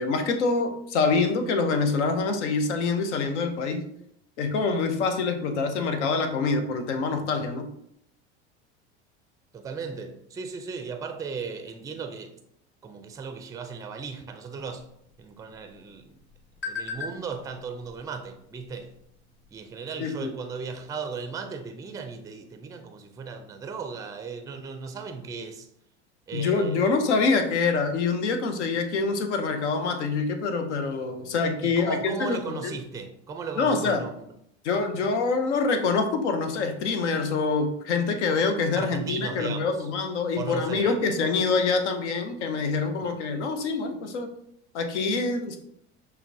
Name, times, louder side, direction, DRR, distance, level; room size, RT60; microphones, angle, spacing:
voice 1, 0.0-3.8 4.4-7.7 20.0-20.3 26.3-32.7 33.6-34.0 34.6-44.3 44.7-45.6, left 4 dB, 80° left, 0.7 m, -25 dB
voice 2, 9.5-12.4 12.8-14.9 15.2-16.2 16.7-18.9 19.5-25.7 26.3-27.0 31.6-34.3 38.7-39.9 40.3-41.2 43.0-43.2, right 5 dB, 10° right, 0.4 m, -36 dB
sound 1, 14.6-19.7, left 5 dB, 35° left, 1.1 m, -42 dB
5.7 x 2.2 x 2.6 m
hypercardioid pair, 90°, 34 cm